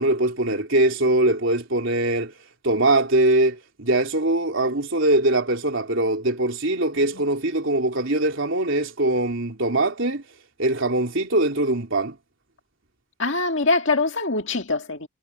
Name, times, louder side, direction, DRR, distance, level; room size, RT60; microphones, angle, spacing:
voice 1, 0.0-2.3 2.6-10.2 10.6-12.2, right 2 dB, 65° right, 3.5 m, -22 dB
voice 2, 13.2-15.1, left 3 dB, 60° left, 2.2 m, -24 dB
head